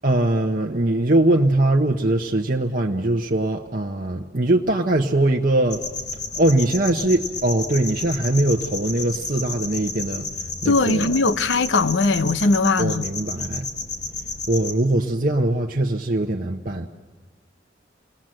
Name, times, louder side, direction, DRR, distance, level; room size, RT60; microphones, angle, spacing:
voice 1, 0.0-5.8 6.4-10.3 10.6-11.1 12.8-13.7 14.5-16.9, right 1 dB, 50° right, 0.9 m, -21 dB
sound 1, 5.7-14.7, left 4 dB, 65° left, 3.0 m, -32 dB
voice 2, 10.7-13.0, left 3 dB, 85° left, 0.8 m, -20 dB
28.5 x 19.5 x 7.7 m
head